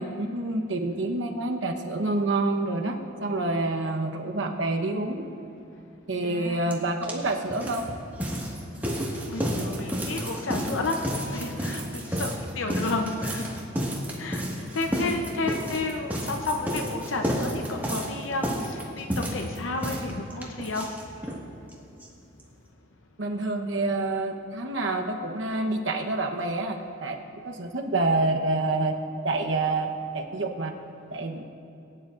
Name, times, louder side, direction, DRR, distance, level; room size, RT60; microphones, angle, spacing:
voice 1, 0.0-5.3 6.1-7.8 23.2-27.2 27.4-29.0 29.2-29.9 30.1-30.7 31.1-31.4, right 2 dB, 75° right, 3 dB, 1.0 m, -27 dB
voice 2, 6.2-6.7 9.3-11.0 11.2-13.6 14.2-20.9, left 3 dB, 85° left, 3 dB, 0.7 m, -32 dB
sound 1, 6.7-6.8 7.0-21.4 21.7-21.8 22.0-22.1 22.4-22.5, equal, 10° right, 1.6 m, -31 dB
20.5 x 10.0 x 2.5 m, 2.7 s
head